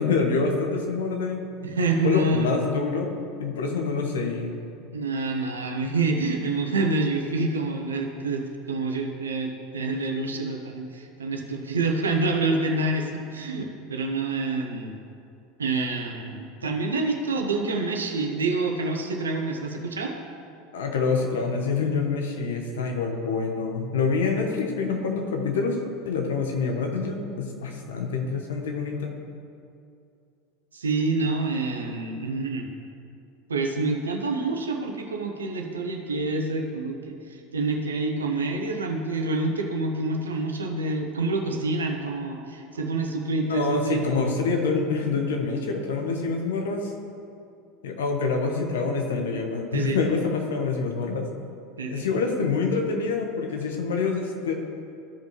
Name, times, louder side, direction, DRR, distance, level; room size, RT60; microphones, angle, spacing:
voice 1, 0.0-1.4 2.0-3.1 3.4-4.5 20.7-25.8 26.0-29.1 43.5-46.9 47.8-51.3 51.9-54.5, left 4 dB, 70° left, 3 dB, 1.1 m, -26 dB
voice 2, 1.6-2.5 4.9-14.9 15.6-20.1 30.7-32.7 33.5-44.0 49.7-50.0 51.8-52.0, right 3 dB, 80° right, 2 dB, 0.9 m, -27 dB
14.0 x 5.2 x 3.1 m, 2.5 s
figure-of-eight pair, 80°, 0 cm